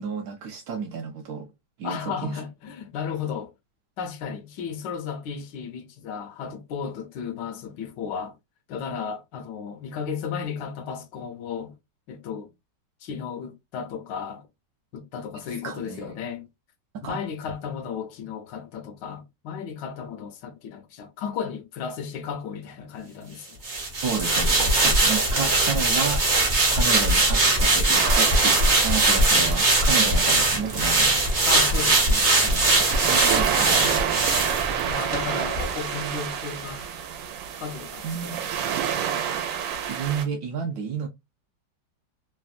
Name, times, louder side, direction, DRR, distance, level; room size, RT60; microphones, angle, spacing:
voice 1, 0.0-1.5 1.8-2.4 15.6-16.2 17.0-17.2 24.0-31.4 32.4-32.7 33.0-34.3 38.0-38.8 39.8-41.1, right 6 dB, 70° right, 1.0 m, -32 dB
voice 2, 1.8-3.5 4.0-8.4 8.7-11.7 12.1-12.5 13.0-14.5 14.9-16.5 17.0-23.6 29.4-29.5 31.4-32.3 34.9-37.0 37.6-38.6 38.9-39.2, left 6 dB, 75° left, 1.2 m, -34 dB
sound 1, 23.6-35.2 35.5-35.7, right 2 dB, 45° right, 0.6 m, -21 dB
sound 2, 27.9-40.2, right 8 dB, 85° right, 1.3 m, -29 dB
3.3 x 2.1 x 2.3 m
omnidirectional pair, 2.0 m